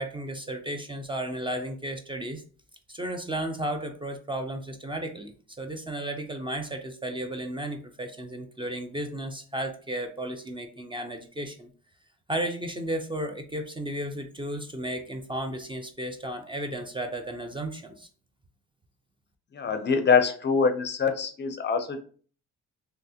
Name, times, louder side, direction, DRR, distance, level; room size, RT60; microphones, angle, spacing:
voice 1, 0.0-2.4 2.9-11.7 12.3-18.1, right 1 dB, 15° right, 6 dB, 0.4 m, -34 dB
voice 2, 19.5-22.0, left 5 dB, 35° left, 8 dB, 0.5 m, -24 dB
3.2 x 2.7 x 2.8 m, 0.43 s
cardioid pair, 90°, 30 cm